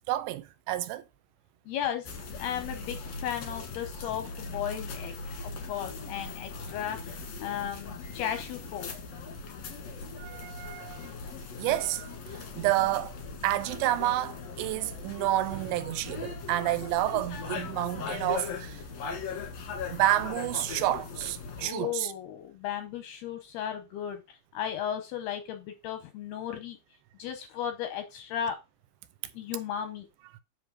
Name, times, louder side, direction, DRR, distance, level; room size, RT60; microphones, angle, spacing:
voice 1, 0.1-1.0 10.2-11.1 11.6-12.1 12.6-13.1 13.4-18.8 19.9-22.1, right 15 dB, 80° right, 2.8 m, -29 dB
voice 2, 1.7-5.1 5.4-8.9 21.6-26.8 27.2-28.6 29.3-30.1, left 9 dB, 80° left, 2.4 m, -35 dB
sound 1, 2.0-21.7, left 4 dB, 65° left, 1.6 m, -39 dB
7.8 x 3.8 x 6.2 m
omnidirectional pair, 5.2 m